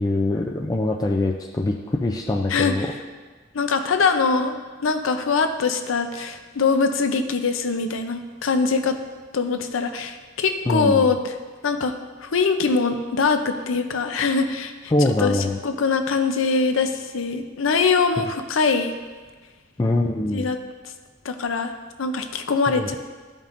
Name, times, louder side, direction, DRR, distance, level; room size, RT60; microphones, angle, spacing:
voice 1, 0.0-2.9 10.7-11.1 14.9-15.6 19.8-20.5 22.7-23.0, left 2 dB, 20° left, 0 dB, 0.4 m, -23 dB
voice 2, 2.5-2.9 3.5-4.5 4.8-9.0 9.3-11.3 11.6-11.9 12.2-14.9 15.2-18.9 20.3-20.6 21.2-21.7 22.0-23.0, left 4 dB, 75° left, 7 dB, 0.6 m, -22 dB
13.0 x 5.4 x 2.6 m, 1.4 s
head